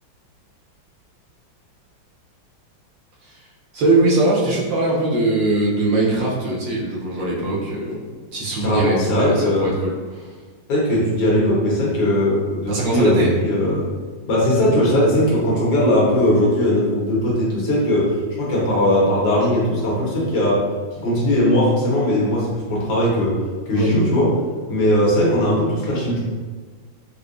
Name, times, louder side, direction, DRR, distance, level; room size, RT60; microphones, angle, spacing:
voice 1, 3.7-8.0 8.3-10.2 12.7-13.3 23.7-23.9, right 2 dB, 75° right, -5 dB, 1.5 m, -21 dB
voice 2, 8.6-9.7 10.7-13.9 14.3-18.1 18.4-20.6 21.0-23.3 23.7-24.3 24.7-26.2, left 1 dB, 70° left, -5 dB, 1.7 m, -19 dB
4.5 x 2.2 x 2.5 m, 1.5 s
omnidirectional pair, 2.1 m